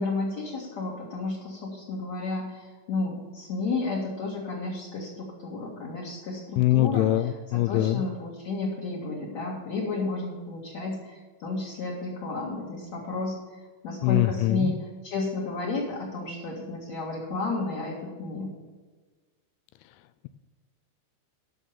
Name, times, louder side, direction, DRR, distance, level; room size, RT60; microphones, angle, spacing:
voice 1, 0.0-13.4 13.8-18.5, left 3 dB, 45° left, -4 dB, 2.5 m, -32 dB
voice 2, 6.6-8.0 14.0-14.7, left 14 dB, 85° left, 13 dB, 2.9 m, -23 dB
13.0 x 6.3 x 7.0 m, 1.3 s
omnidirectional pair, 5.5 m